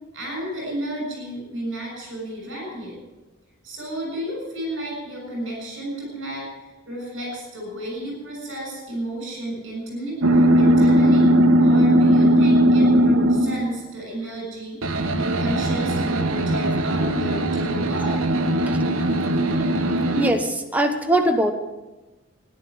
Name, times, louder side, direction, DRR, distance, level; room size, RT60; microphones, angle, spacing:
voice 1, 0.1-3.0 3.6-11.3 11.6-18.2, right 1 dB, 65° right, 0 dB, 6.8 m, -32 dB
sound 1, 10.2-13.8 14.8-20.3, right 1 dB, 85° right, 1.2 m, -18 dB
voice 2, 20.1-21.5, right 1 dB, 5° right, 4 dB, 1.1 m, -21 dB
13.5 x 11.0 x 9.5 m, 1.1 s
head